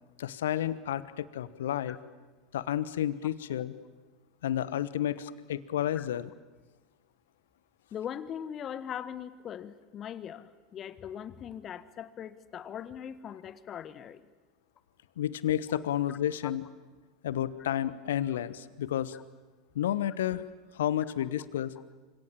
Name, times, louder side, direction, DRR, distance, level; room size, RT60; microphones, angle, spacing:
voice 1, 0.2-2.0 2.5-3.7 4.4-6.3 15.2-16.6 17.2-19.2 19.7-20.4 20.7-21.7, left 11 dB, 70° left, 17 dB, 1.2 m, -31 dB
voice 2, 7.9-14.2 16.1-16.2 16.4-16.5 19.1-19.2, left 9 dB, 35° left, 15 dB, 1.6 m, -40 dB
29.0 x 26.0 x 7.5 m, 1.2 s
figure-of-eight pair, 80°, 0 cm